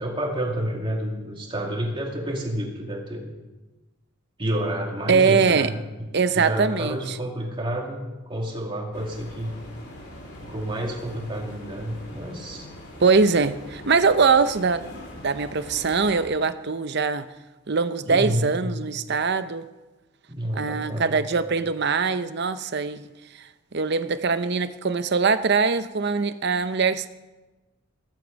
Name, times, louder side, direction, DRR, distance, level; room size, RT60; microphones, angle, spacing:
voice 1, 0.0-3.3 4.4-6.1 6.3-9.5 10.4-12.7 18.1-18.5 20.3-21.2, right 1 dB, 25° right, 2.5 m, -29 dB
voice 2, 5.1-5.7 6.1-7.2 13.0-14.9 15.2-17.3 17.7-19.7 20.5-23.1 23.3-27.1, right 5 dB, 50° right, 0.7 m, -22 dB
sound 1, 8.9-16.2, left 1 dB, 50° left, 3.1 m, -42 dB
15.5 x 14.0 x 5.3 m
head